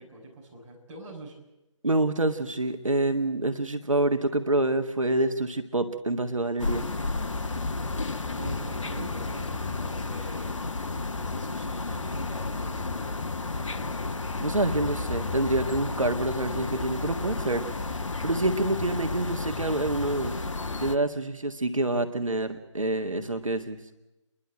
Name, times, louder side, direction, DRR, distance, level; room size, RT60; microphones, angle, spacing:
voice 1, 0.0-1.4 8.3-13.2 13.5-14.1, right 1 dB, 15° right, -5 dB, 6.0 m, -44 dB
voice 2, 1.8-6.9 14.4-17.6 18.2-20.3 20.8-23.8, right 2 dB, 85° right, 7 dB, 1.8 m, -27 dB
sound 1, 6.6-21.0, left 3 dB, 75° left, 1.1 m, -32 dB
29.5 x 11.5 x 9.0 m, 0.95 s
figure-of-eight pair, 150°, 16 cm